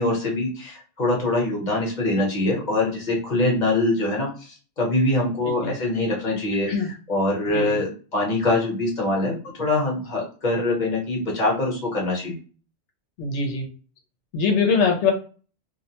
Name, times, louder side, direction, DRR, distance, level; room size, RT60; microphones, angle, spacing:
voice 1, 0.0-12.3, left 2 dB, 45° left, -3 dB, 1.0 m, -24 dB
voice 2, 5.4-5.7 6.7-6.9 7.5-7.8 13.2-13.6 14.3-15.1, left 5 dB, 85° left, 3 dB, 0.9 m, -22 dB
2.4 x 2.1 x 2.8 m, 0.38 s
omnidirectional pair, 1.2 m